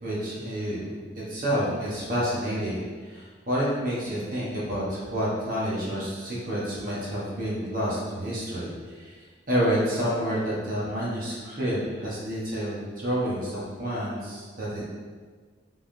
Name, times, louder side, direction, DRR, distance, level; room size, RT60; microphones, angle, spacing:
voice 1, 0.0-1.0 1.3-9.1 9.5-14.9, equal, 45° right, -7 dB, 1.1 m, -29 dB
5.4 x 3.6 x 2.7 m, 1.5 s
head